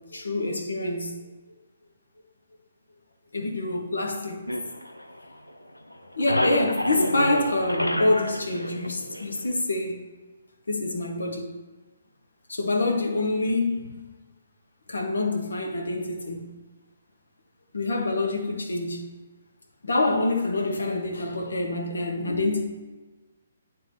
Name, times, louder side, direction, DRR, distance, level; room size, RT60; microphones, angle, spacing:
voice 1, 0.1-1.2 3.3-4.4 6.1-10.0 10.7-11.5 12.5-14.1 14.9-16.5 17.7-19.1 19.8-22.6, left 2 dB, 70° left, 1.3 m, -26 dB
sound 1, 4.5-5.6 5.9-9.6, left 1 dB, 90° left, 0.6 m, -29 dB
10.5 x 3.8 x 2.9 m
figure-of-eight pair, 135°, 0 cm